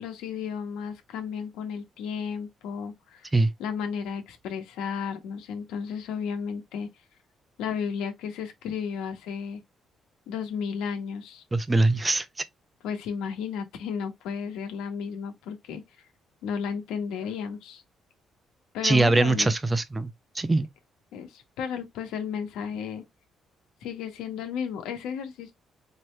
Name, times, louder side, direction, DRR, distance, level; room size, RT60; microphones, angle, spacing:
voice 1, 0.0-3.3 3.6-6.9 7.6-9.6 10.3-11.4 12.8-15.8 16.4-17.8 18.7-19.5 21.1-23.0 23.8-25.5, left 7 dB, 90° left, 1.2 m, -33 dB
voice 2, 11.5-12.3 18.8-20.7, right 2 dB, 20° right, 0.7 m, -22 dB
4.6 x 3.2 x 3.2 m
cardioid pair, 75°, 0 cm